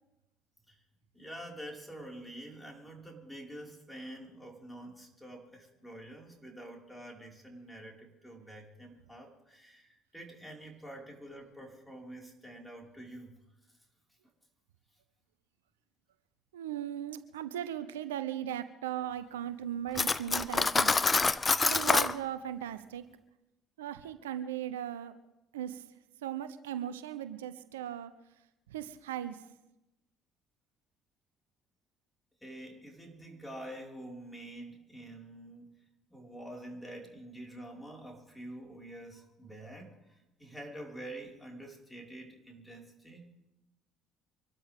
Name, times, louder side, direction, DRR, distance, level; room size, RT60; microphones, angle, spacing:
voice 1, 1.1-13.3 32.4-35.8 36.1-43.3, right 1 dB, 5° left, -1 dB, 5.3 m, -47 dB
voice 2, 16.5-21.0 21.6-23.0 23.8-25.2 25.5-25.8 26.2-28.1 28.7-29.4, right 11 dB, 90° right, 12 dB, 0.7 m, -37 dB
Cutlery silverware, 19.9-22.1, left 4 dB, 30° left, 0.7 m, -26 dB
25.0 x 13.0 x 3.7 m, 0.92 s
hypercardioid pair, 60°, 0 cm